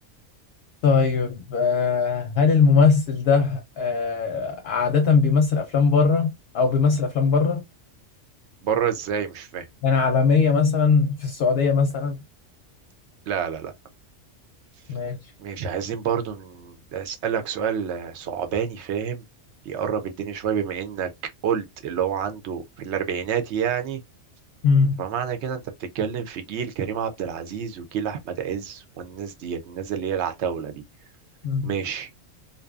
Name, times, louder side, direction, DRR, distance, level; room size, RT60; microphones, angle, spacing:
voice 1, 0.8-7.6 9.8-12.2 14.9-15.2 24.6-25.0 31.4-31.7, left 5 dB, 60° left, 0.7 m, -20 dB
voice 2, 8.6-9.7 13.3-13.7 15.4-19.2 19.7-21.1 21.4-24.0 25.0-30.8 31.6-32.1, right 8 dB, 65° right, 0.8 m, -28 dB
2.6 x 2.2 x 2.3 m
omnidirectional pair, 1.3 m